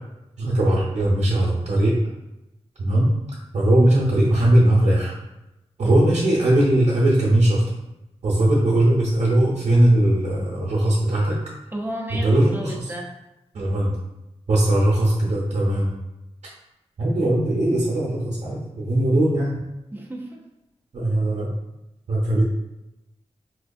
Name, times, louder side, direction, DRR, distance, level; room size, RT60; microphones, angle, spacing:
voice 1, 0.4-2.0 2.8-3.1 3.5-5.1 5.8-7.6 8.2-11.4 12.2-12.8 13.5-13.9 14.5-15.9 17.0-19.5 20.9-21.5 22.1-22.4, right 1 dB, 75° right, -6 dB, 0.7 m, -19 dB
voice 2, 11.7-13.1 19.9-20.4, right 1 dB, 15° right, -1 dB, 0.6 m, -33 dB
4.1 x 2.3 x 2.6 m, 0.94 s
wide cardioid pair, 95°, 12 cm